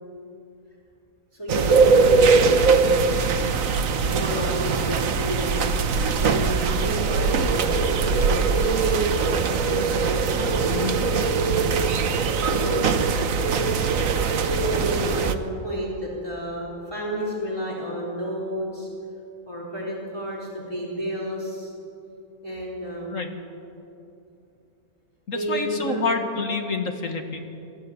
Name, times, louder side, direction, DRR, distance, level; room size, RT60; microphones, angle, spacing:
voice 1, 1.3-3.0 4.0-5.6 6.2-11.5 12.4-12.8 13.5-13.9 14.6-18.9 19.5-21.7 22.4-23.3 25.3-26.1, equal, 15° left, -7 dB, 4.2 m, -31 dB
sound 1, 1.5-15.3, right 5 dB, 60° right, 1.4 m, -21 dB
voice 2, 25.3-27.5, left 4 dB, 55° left, 5 dB, 2.0 m, -28 dB
22.5 x 13.5 x 9.8 m, 2.7 s
omnidirectional pair, 1.6 m